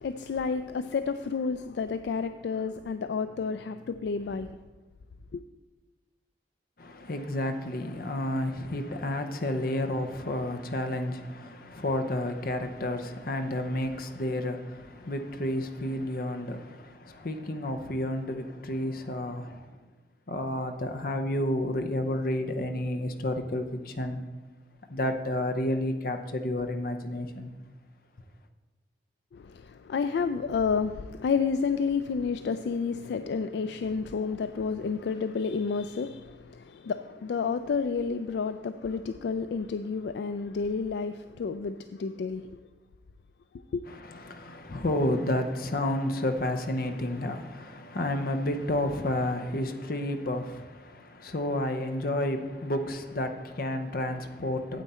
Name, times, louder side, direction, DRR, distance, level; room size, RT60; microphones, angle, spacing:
voice 1, 0.0-4.5 5.3-5.4 29.3-42.5 43.7-43.8, left 5 dB, 70° left, 0.3 m, -30 dB
voice 2, 6.8-19.7 20.3-24.2 24.9-27.5 43.9-54.8, left 1 dB, 55° left, 0.8 m, -31 dB
9.1 x 8.0 x 4.3 m
head